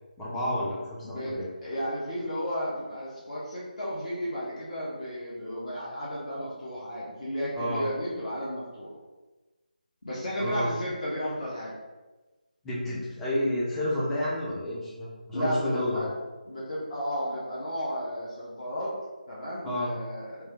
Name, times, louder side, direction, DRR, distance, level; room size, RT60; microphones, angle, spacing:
voice 1, 0.2-1.5 7.6-7.9 10.4-10.8 12.6-16.1 19.6-19.9, left 1 dB, 5° left, -8 dB, 0.4 m, -30 dB
voice 2, 1.0-8.9 10.0-11.7 15.3-16.1 16.5-18.9 19.3-20.3, equal, 45° left, -7 dB, 0.8 m, -33 dB
3.1 x 2.3 x 3.0 m, 1.2 s
figure-of-eight pair, 160°, 5 cm